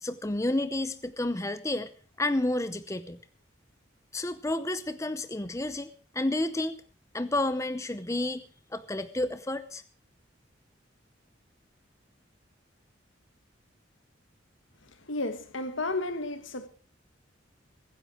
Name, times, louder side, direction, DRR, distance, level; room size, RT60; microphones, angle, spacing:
voice 1, 0.0-1.9 2.2-3.2 4.1-6.8 7.1-8.4 8.7-9.8, left 1 dB, 15° left, 0.7 m, -30 dB
voice 2, 15.0-16.7, left 2 dB, 80° left, 1.6 m, -32 dB
23.0 x 10.5 x 4.8 m
head